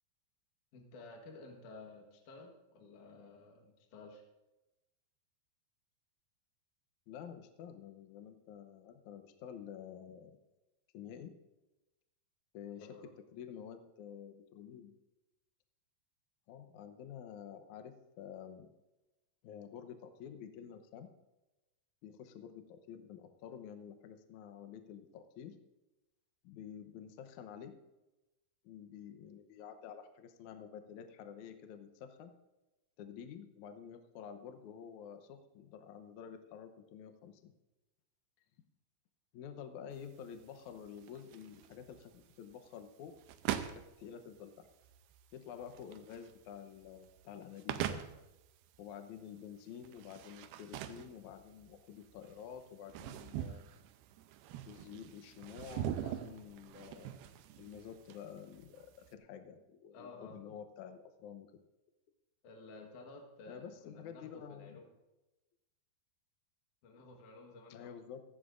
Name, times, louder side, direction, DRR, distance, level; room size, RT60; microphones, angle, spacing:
voice 1, 0.7-4.2 12.8-13.1 59.9-60.4 62.4-64.9 66.8-67.9, left 3 dB, 60° left, 2 dB, 2.6 m, -53 dB
voice 2, 7.1-10.4 10.9-11.3 12.5-12.9 13.3-14.9 16.5-18.7 19.4-21.1 22.0-25.6 26.4-27.7 28.6-32.3 33.0-37.5 39.3-43.1 43.5-44.7 45.3-48.0 48.8-53.6 54.7-57.3 57.6-61.5 63.5-64.8 67.7-68.2, left 8 dB, 75° left, 8 dB, 1.8 m, -50 dB
sound 1, 39.9-59.1, right 11 dB, 80° right, 2.6 m, -44 dB
16.5 x 14.5 x 2.6 m, 1.0 s
omnidirectional pair, 4.6 m